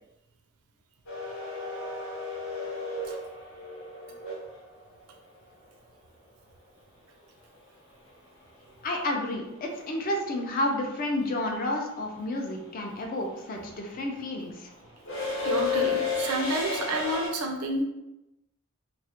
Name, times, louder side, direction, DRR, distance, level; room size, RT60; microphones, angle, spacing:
sound 1, 1.1-5.1 7.5-7.6 8.9-9.2 9.5-17.3, left 4 dB, 65° left, 0.8 m, -33 dB
voice 1, 8.8-14.7, left 1 dB, 40° left, 1 dB, 0.4 m, -31 dB
voice 2, 15.4-17.8, right 1 dB, 85° right, 3 dB, 0.4 m, -29 dB
2.3 x 2.0 x 2.7 m, 0.92 s
head